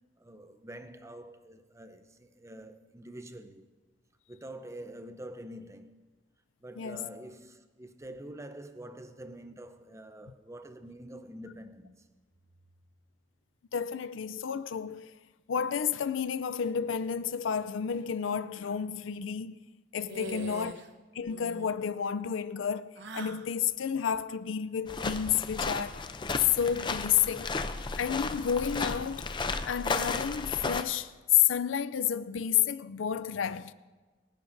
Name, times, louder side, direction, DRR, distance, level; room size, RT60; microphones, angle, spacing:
voice 1, 0.2-3.7 4.3-6.0 6.6-12.1 20.3-20.6, right 1 dB, 15° right, 0.6 m, -46 dB
voice 2, 6.8-7.1 13.7-15.1 15.5-19.6 19.9-20.8 21.1-26.0 26.4-27.5 27.9-29.3 29.7-33.7, left 8 dB, 85° left, 0.5 m, -30 dB
sound 1, 20.1-20.9 21.2-21.7 23.0-23.5, right 2 dB, 60° right, 0.8 m, -42 dB
sound 2, 24.9-30.8, left 3 dB, 25° left, 0.5 m, -34 dB
26.0 x 10.5 x 2.6 m
head